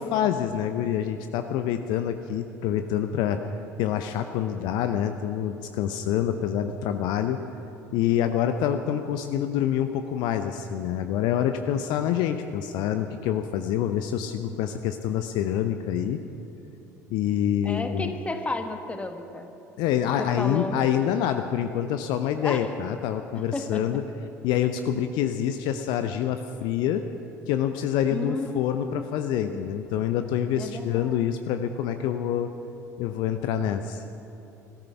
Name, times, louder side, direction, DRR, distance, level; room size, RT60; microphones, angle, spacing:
voice 1, 0.0-3.5 3.8-7.4 7.9-16.2 17.1-18.1 19.8-24.0 24.4-27.0 27.5-32.5 33.0-34.0, left 10 dB, 55° left, 8 dB, 0.6 m, -26 dB
voice 2, 17.6-19.5 20.2-20.8 22.4-22.7 23.5-23.8 28.1-29.1 29.4-29.6 30.6-31.3, left 2 dB, 15° left, 7 dB, 1.3 m, -33 dB
15.5 x 13.5 x 5.8 m, 2.9 s
figure-of-eight pair, 60°, 9 cm